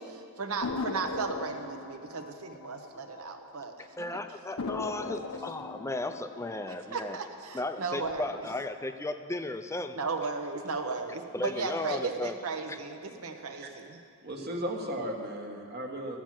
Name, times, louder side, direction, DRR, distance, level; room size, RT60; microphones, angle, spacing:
voice 1, 0.0-4.2 6.7-8.4 10.0-14.0, right 4 dB, 65° right, 5 dB, 1.0 m, -35 dB
sound 1, 0.6-3.7 4.0-4.1 4.6-7.5 7.9-8.5, left 3 dB, 75° left, 0.8 m, -39 dB
voice 2, 3.8-7.2 7.5-10.0 11.3-12.3 12.7-12.8, left 2 dB, 10° left, 9 dB, 0.5 m, -35 dB
voice 3, 14.2-16.2, equal, 45° right, 2 dB, 1.4 m, -36 dB
14.0 x 7.5 x 7.5 m, 2.4 s
head